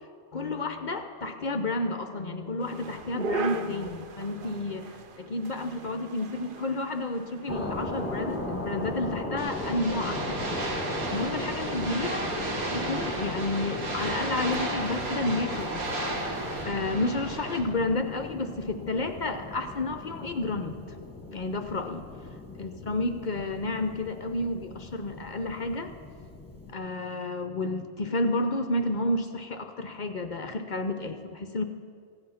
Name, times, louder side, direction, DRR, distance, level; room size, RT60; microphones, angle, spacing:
voice 1, 0.3-4.8 5.2-10.7 11.1-12.3 12.7-15.9 16.6-20.8 21.3-22.1 22.6-25.9 26.7-31.6, left 2 dB, 55° left, 7 dB, 0.5 m, -31 dB
sound 1, 2.6-16.7, right 3 dB, 50° right, 0.7 m, -42 dB
sound 2, 7.5-26.7, left 2 dB, 10° left, 1.1 m, -38 dB
sound 3, 9.4-17.6, right 1 dB, 80° right, 2.0 m, -33 dB
15.5 x 10.0 x 5.7 m, 2.1 s
omnidirectional pair, 1.5 m